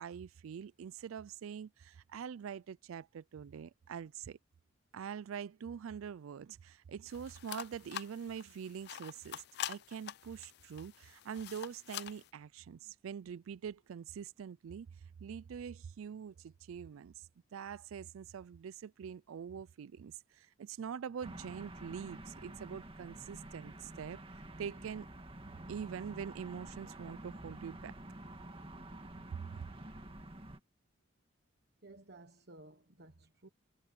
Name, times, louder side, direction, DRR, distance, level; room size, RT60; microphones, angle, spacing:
voice 1, 0.0-4.4 4.9-14.9 15.2-24.2 24.6-25.1 25.5-28.0 29.5-29.6, right 7 dB, 90° right, 0.4 m, -44 dB
sound 1, 7.1-12.3, left 11 dB, 55° left, 0.4 m, -46 dB
sound 2, 21.2-30.6, right 1 dB, 30° right, 2.0 m, -49 dB
voice 2, 31.8-33.5, right 2 dB, 55° right, 1.3 m, -56 dB
head